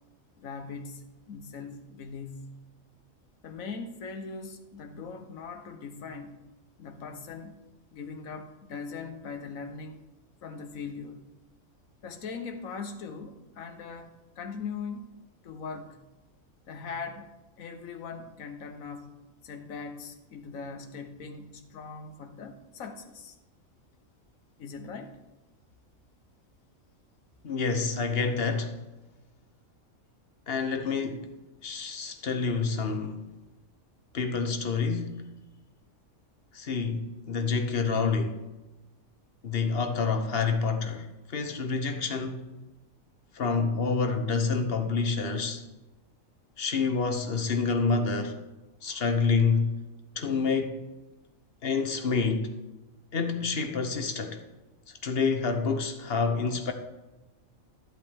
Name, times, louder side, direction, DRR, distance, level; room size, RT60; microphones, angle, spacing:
voice 1, 0.4-2.6 3.4-6.4 6.8-7.6 7.9-10.0 10.4-11.3 12.0-15.1 15.4-16.0 16.7-17.3 17.6-19.1 19.4-23.4 24.6-25.2, left 5 dB, 75° left, 1.4 m, -40 dB
voice 2, 27.4-28.8 30.5-31.3 31.6-33.2 34.1-35.2 36.5-38.4 39.4-42.5 43.3-45.6 46.6-48.4 48.8-49.8 50.2-50.8 51.6-52.6 53.1-54.4 54.9-56.7, left 4 dB, 50° left, 1.2 m, -28 dB
14.0 x 8.1 x 3.6 m
omnidirectional pair, 1.4 m